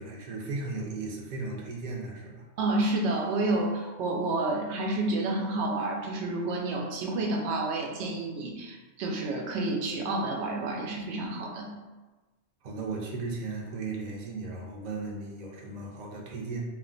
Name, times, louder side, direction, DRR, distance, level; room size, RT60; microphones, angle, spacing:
voice 1, 0.0-2.4 12.6-16.6, right 3 dB, 50° right, -1 dB, 0.6 m, -36 dB
voice 2, 2.6-11.7, right 2 dB, 80° right, 1 dB, 0.8 m, -29 dB
2.4 x 2.2 x 3.7 m, 1.2 s
omnidirectional pair, 1.1 m